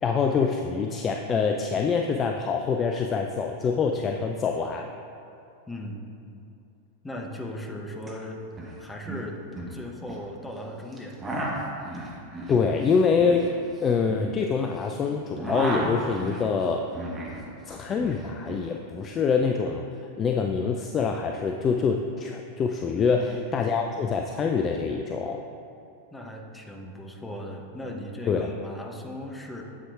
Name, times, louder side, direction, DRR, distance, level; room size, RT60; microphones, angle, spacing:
voice 1, 0.0-4.9 12.5-16.9 17.7-19.8 20.2-25.4 28.3-28.5, left 5 dB, 25° left, 3 dB, 0.3 m, -25 dB
voice 2, 5.7-6.0 7.0-8.4 8.8-9.4 9.7-11.2 23.0-23.6 26.1-29.6, left 1 dB, 10° left, 1 dB, 0.7 m, -38 dB
sound 1, 8.0-8.1 8.4-8.7 9.0-10.2 10.9-14.9 15.2-17.4 17.7-18.7, right 1 dB, 15° right, 1.1 m, -34 dB
8.2 x 7.5 x 2.4 m, 2.7 s
figure-of-eight pair, 90°, 0 cm